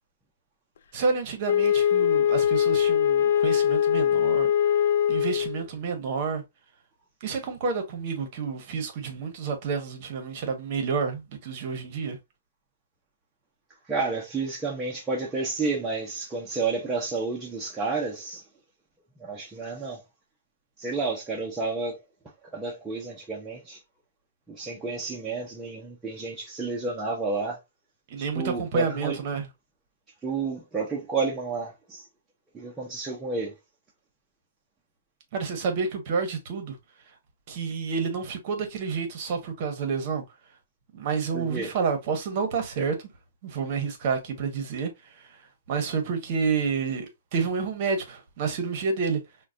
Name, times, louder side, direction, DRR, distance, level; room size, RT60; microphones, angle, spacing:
voice 1, 0.9-4.5 5.1-6.4 7.2-12.2 28.1-29.5 35.3-36.8 37.5-40.2 40.9-42.9 43.4-45.4 45.7-49.2, right 5 dB, 35° right, 0.9 m, -29 dB
Wind instrument woodwind instrument, 1.4-5.6, left 9 dB, 65° left, 0.4 m, -22 dB
voice 2, 13.9-18.4 19.2-20.0 20.8-22.0 22.5-23.8 24.5-27.6 28.3-29.2 30.2-32.1 32.5-33.5 41.3-41.7, right 4 dB, 10° right, 0.5 m, -31 dB
4.5 x 2.1 x 2.5 m
hypercardioid pair, 165°, 0 cm